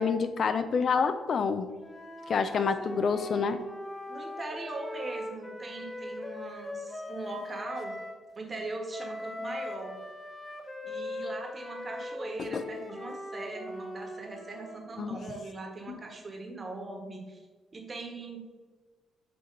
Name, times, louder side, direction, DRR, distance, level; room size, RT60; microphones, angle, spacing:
voice 1, 0.0-1.7 2.3-3.6 12.4-12.6 15.0-15.2 15.9-16.0, left 5 dB, 55° left, 10 dB, 0.3 m, -28 dB
Wind instrument woodwind instrument, 1.8-8.2 8.9-14.9, left 1 dB, 20° left, 0.8 m, -40 dB
voice 2, 2.6-3.0 4.1-8.0 8.4-10.0 10.8-17.4 17.7-18.5, right 2 dB, 35° right, 1 dB, 1.3 m, -40 dB
6.3 x 2.9 x 5.2 m, 1.3 s
cardioid pair, 90°, 0 cm